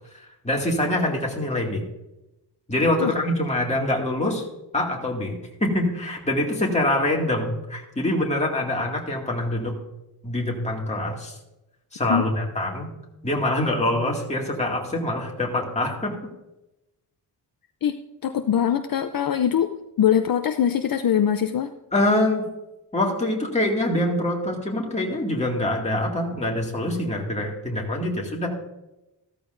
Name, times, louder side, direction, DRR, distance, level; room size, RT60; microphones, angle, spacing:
voice 1, 0.4-1.8 2.7-4.5 4.7-9.8 10.2-11.4 11.9-12.9 13.2-16.1 21.9-22.5 22.9-28.5, left 1 dB, 15° left, -2 dB, 2.2 m, -24 dB
voice 2, 18.2-21.7, left 9 dB, 55° left, 7 dB, 0.6 m, -22 dB
14.5 x 13.5 x 2.6 m, 0.96 s
wide cardioid pair, 165°, 42 cm